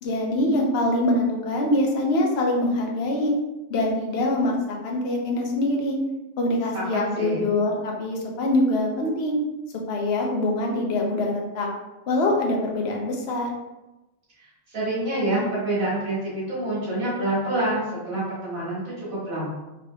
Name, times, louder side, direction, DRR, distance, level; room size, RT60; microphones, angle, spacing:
voice 1, 0.0-3.3 3.7-6.0 6.4-9.4 9.9-11.7 12.1-13.5, left 1 dB, 55° left, 1 dB, 0.9 m, -24 dB
voice 2, 6.7-7.4 14.7-19.5, right 1 dB, 85° right, -8 dB, 2.0 m, -27 dB
4.1 x 2.8 x 2.7 m, 1.0 s
omnidirectional pair, 1.4 m